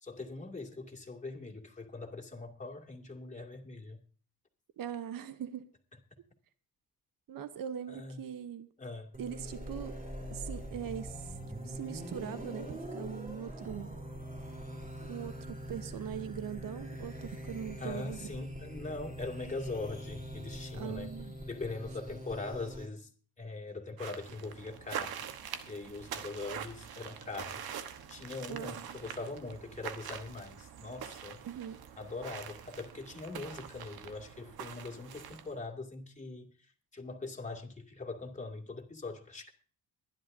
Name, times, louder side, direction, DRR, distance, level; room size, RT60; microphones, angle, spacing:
voice 1, 0.0-4.0 7.9-8.2 8.8-9.1 17.8-21.1 21.4-23.1 23.4-25.2 25.7-27.7 28.1-31.4 32.0-39.5, left 3 dB, 20° left, 2.4 m, -42 dB
voice 2, 4.8-5.7 7.3-8.7 9.2-10.0 10.3-11.3 11.6-14.0 15.0-18.3 20.7-21.3 28.5-29.0 31.4-31.8, right 9 dB, 65° right, 1.0 m, -41 dB
sound 1, 9.1-22.9, equal, 20° right, 3.7 m, -43 dB
sound 2, 24.0-35.6, right 9 dB, 90° right, 1.3 m, -44 dB
23.5 x 11.0 x 2.7 m
cardioid pair, 105°, 36 cm